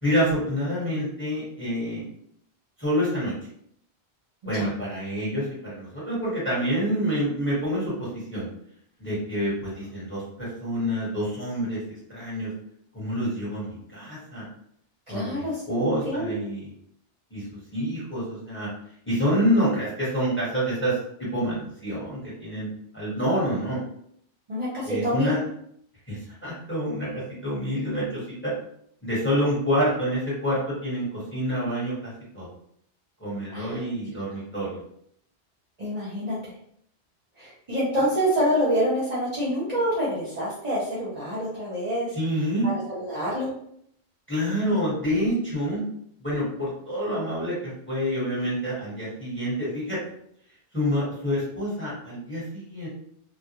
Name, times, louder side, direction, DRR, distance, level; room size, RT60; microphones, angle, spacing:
voice 1, 0.0-2.0 2.8-3.3 4.5-8.5 9.0-11.8 12.1-12.5 12.9-14.4 15.1-16.7 17.3-17.4 17.7-18.7 19.0-22.7 22.9-23.8 24.8-25.4 26.1-28.5 29.0-32.5 33.2-34.8 42.1-42.7 44.3-45.8 46.2-50.0 50.7-52.9, equal, 10° left, -8 dB, 1.1 m, -27 dB
voice 2, 15.1-16.4 24.5-25.3 33.5-33.9 35.8-36.5 37.4-42.2 42.6-43.5, equal, 45° right, -8 dB, 0.7 m, -27 dB
2.3 x 2.1 x 2.9 m, 0.68 s
omnidirectional pair, 1.1 m